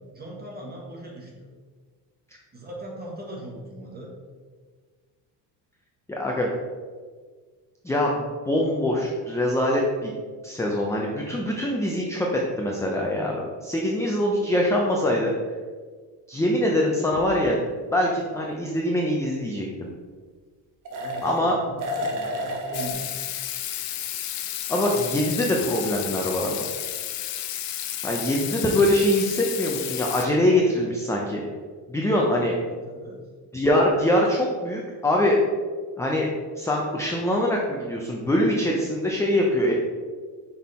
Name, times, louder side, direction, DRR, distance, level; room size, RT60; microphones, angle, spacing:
voice 1, 0.1-1.5 2.5-4.1 21.0-23.2 32.6-33.2, right 1 dB, 20° right, -2 dB, 1.5 m, -39 dB
voice 2, 6.1-6.5 7.8-10.1 10.4-12.3 12.6-15.3 16.3-17.6 17.9-19.9 21.2-21.6 24.7-26.6 28.0-31.4 31.9-32.6 33.5-35.4 36.0-36.3 36.6-39.7, left 1 dB, 5° left, -2 dB, 0.5 m, -23 dB
sound 1, 17.1-17.2 20.9-21.5 21.8-22.9, equal, 50° right, 1.1 m, -30 dB
Water tap faucet / Sink (filling or washing), 22.7-30.3, left 11 dB, 75° left, 0.7 m, -32 dB
6.1 x 3.7 x 4.2 m, 1.5 s
cardioid pair, 130°, 43 cm